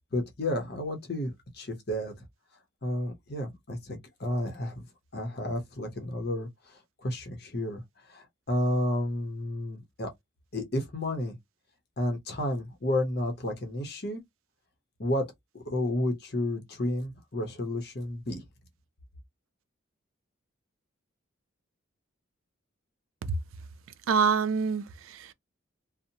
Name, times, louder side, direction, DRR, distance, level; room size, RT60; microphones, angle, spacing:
voice 1, 0.1-2.2 2.8-4.9 5.1-10.1 10.5-11.4 12.0-14.2 15.0-18.4, left 1 dB, 50° left, 0.7 m, -31 dB
voice 2, 24.1-25.3, right 5 dB, 80° right, 0.4 m, -26 dB
2.7 x 2.0 x 2.7 m
head